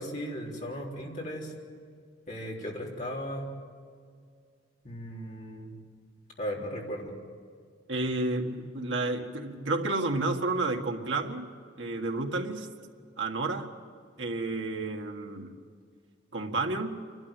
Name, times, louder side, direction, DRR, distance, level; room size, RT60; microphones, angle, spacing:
voice 1, 0.0-1.5 2.3-3.5 4.8-5.7 6.4-7.2, equal, 40° left, -3 dB, 3.8 m, -36 dB
voice 2, 7.9-11.5 11.8-12.7 13.2-13.7 14.2-15.5 16.3-17.0, right 2 dB, 85° right, 2 dB, 1.8 m, -31 dB
28.5 x 12.0 x 9.1 m, 2.1 s
head